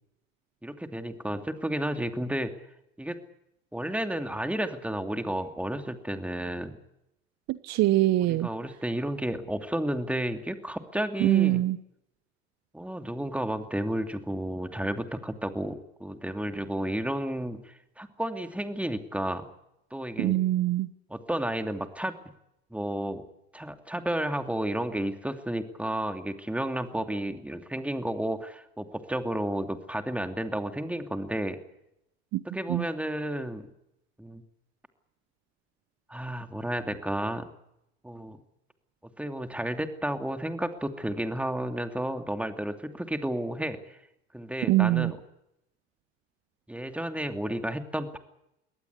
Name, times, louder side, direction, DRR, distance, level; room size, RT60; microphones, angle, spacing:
voice 1, 0.6-2.5 3.0-3.2 3.7-6.8 8.3-11.6 12.7-19.4 19.9-20.4 21.1-22.2 22.7-23.2 23.5-31.6 32.4-33.7 34.2-34.4 36.1-37.5 38.0-38.4 39.2-44.0 44.3-45.2 46.7-48.2, right 1 dB, 5° right, 7 dB, 2.7 m, -32 dB
voice 2, 7.5-8.5 11.2-11.8 20.2-20.9 32.3-32.4 32.7-32.8 44.7-45.1, right 16 dB, 50° right, 16 dB, 1.0 m, -23 dB
23.5 x 18.5 x 8.4 m, 0.83 s
hypercardioid pair, 70°, 33 cm